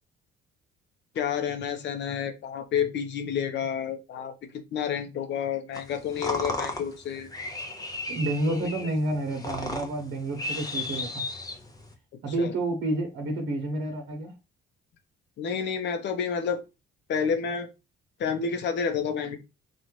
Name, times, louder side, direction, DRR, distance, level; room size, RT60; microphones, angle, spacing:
voice 1, 1.1-4.3 4.7-7.3 8.5-8.7 12.4-12.5 15.4-16.6 17.1-17.7 18.2-19.4, left 7 dB, 60° left, 0.8 m, -29 dB
sound 1, 5.7-11.9, left 2 dB, 20° left, 0.6 m, -35 dB
voice 2, 8.1-11.3 12.2-14.3, right 1 dB, 70° right, 1.0 m, -29 dB
4.2 x 2.4 x 3.1 m
cardioid pair, 125°, 21 cm